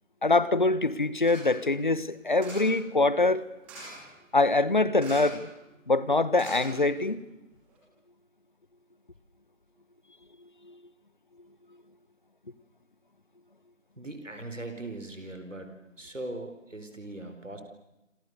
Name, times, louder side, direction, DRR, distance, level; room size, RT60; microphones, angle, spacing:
voice 1, 0.2-3.5 4.3-5.5 5.9-7.2 10.7-10.8, left 2 dB, 40° left, 17 dB, 1.3 m, -24 dB
sound 1, 1.3-1.6 2.4-2.8 3.6-4.1 5.0-5.5 5.7-5.8 6.3-7.2 7.7-7.8, right 1 dB, 5° right, 2.4 m, -44 dB
voice 2, 14.0-15.7 16.0-17.6, right 2 dB, 70° right, 7 dB, 4.5 m, -39 dB
28.0 x 27.5 x 6.7 m, 0.97 s
figure-of-eight pair, 165°, 39 cm